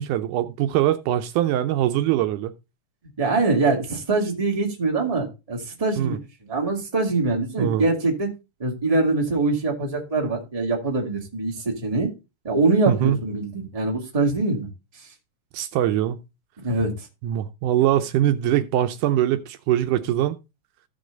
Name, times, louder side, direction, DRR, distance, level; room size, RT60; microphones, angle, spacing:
voice 1, 0.0-2.5 6.0-6.2 7.6-7.8 12.9-13.2 15.5-16.2 17.2-20.4, right 12 dB, 80° right, 2.1 m, -22 dB
voice 2, 3.2-6.2 6.4-8.3 8.6-12.1 12.4-14.7 15.0-15.1 16.6-17.1, right 3 dB, 15° right, 2.0 m, -23 dB
14.5 x 5.3 x 3.8 m
omnidirectional pair, 3.7 m